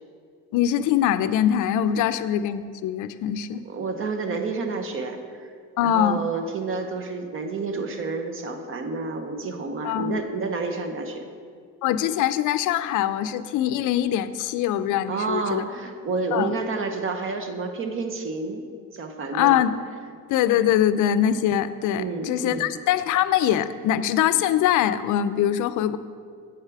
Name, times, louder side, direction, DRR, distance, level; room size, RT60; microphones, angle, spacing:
voice 1, 0.5-3.6 5.8-6.2 9.8-10.2 11.8-15.6 16.3-16.5 19.3-19.8 20.3-26.0, left 10 dB, 70° left, 13 dB, 0.5 m, -23 dB
voice 2, 3.7-5.5 5.8-11.3 15.1-18.7 18.9-19.6 22.0-22.7, right 4 dB, 40° right, 6 dB, 0.7 m, -29 dB
8.0 x 6.5 x 4.7 m, 2.2 s
cardioid pair, 140°, 32 cm